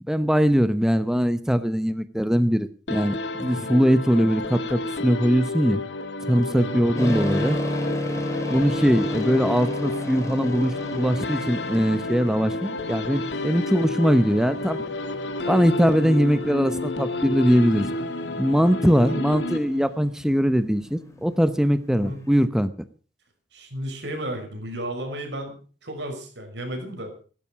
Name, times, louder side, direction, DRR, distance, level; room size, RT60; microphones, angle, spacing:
voice 1, 0.1-5.8 6.3-7.6 8.5-14.8 15.5-17.9 18.4-22.7, equal, 5° right, 11 dB, 0.8 m, -21 dB
sound 1, 2.9-20.1, left 2 dB, 85° left, 1.7 m, -31 dB
voice 2, 6.5-6.9 19.0-19.2 21.9-22.2 23.5-25.6 25.8-27.1, right 1 dB, 85° right, 4 dB, 5.9 m, -33 dB
sound 2, 7.0-22.4, left 1 dB, 20° left, 3.5 m, -34 dB
16.0 x 13.0 x 6.1 m, 0.40 s
head